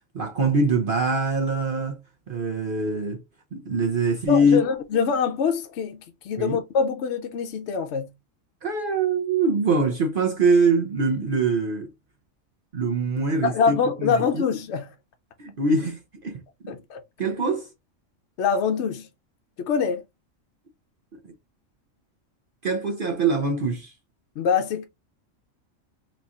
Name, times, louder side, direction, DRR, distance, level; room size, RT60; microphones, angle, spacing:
voice 1, 0.1-2.0 2.3-3.2 3.5-4.6 6.4-6.6 8.6-11.9 12.7-14.4 15.4-16.8 17.2-17.7 21.1-21.2 22.6-23.9, right 3 dB, 50° right, 0.7 m, -23 dB
voice 2, 4.3-8.1 13.4-14.9 16.7-17.0 18.4-19.1 19.6-20.0 24.4-24.8, left 6 dB, 65° left, 0.8 m, -24 dB
4.1 x 3.0 x 2.4 m
omnidirectional pair, 1.4 m